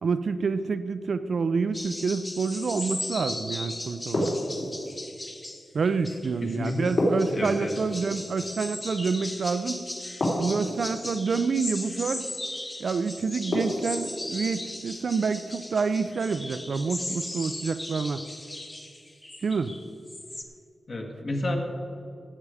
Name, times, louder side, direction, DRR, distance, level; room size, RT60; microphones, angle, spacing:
voice 1, 0.0-4.3 5.7-9.8 10.4-12.2 12.8-18.2 19.4-19.7, right 5 dB, 60° right, 11 dB, 0.5 m, -28 dB
sound 1, 1.7-20.4, left 1 dB, 15° left, 1.0 m, -38 dB
sound 2, 4.1-4.9 7.0-8.0 10.2-11.0 13.5-14.2, left 1 dB, 60° left, 3.6 m, -27 dB
voice 2, 6.4-7.0 7.3-7.7 20.9-21.6, left 2 dB, 45° left, 2 dB, 1.5 m, -31 dB
16.5 x 8.1 x 4.9 m, 2.6 s
wide cardioid pair, 160°, 0 cm